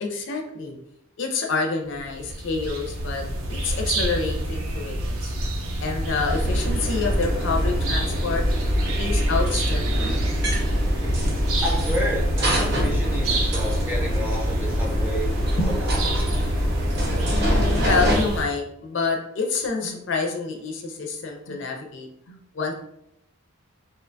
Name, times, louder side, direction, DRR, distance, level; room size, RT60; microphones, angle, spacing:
voice 1, 0.0-0.8 1.2-3.2 3.5-5.2 5.8-8.4 9.0-10.1 15.6-15.7 17.3-22.7, left 4 dB, 55° left, 1 dB, 0.4 m, -28 dB
sound 1, 1.9-18.5, right 1 dB, 85° right, 0.5 m, -28 dB
sound 2, 6.3-18.2, equal, 50° right, 0.6 m, -24 dB
voice 2, 11.6-15.3 15.6-16.0, equal, 10° right, -3 dB, 0.5 m, -30 dB
2.6 x 2.2 x 2.5 m, 0.78 s
head